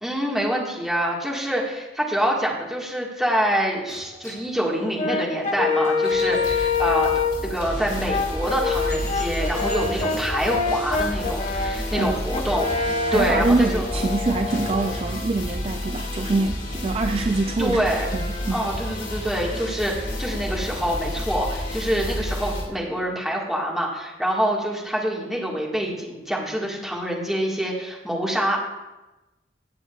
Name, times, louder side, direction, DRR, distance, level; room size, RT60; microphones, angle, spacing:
voice 1, 0.0-7.1 7.4-13.8 17.6-18.1 18.5-28.6, equal, ahead, -3 dB, 1.8 m, -26 dB
sound 1, 3.9-7.7 8.2-8.3 8.7-15.2, left 1 dB, 20° left, 4.1 m, -43 dB
Brass instrument, 5.0-7.5 8.1-15.0, left 4 dB, 35° left, 0.7 m, -26 dB
sound 2, 6.1-22.6, left 1 dB, 65° left, 3.6 m, -31 dB
voice 2, 13.1-17.8 18.1-18.6, right 3 dB, 30° right, 6 dB, 0.4 m, -24 dB
18.5 x 7.8 x 2.4 m, 1.1 s
head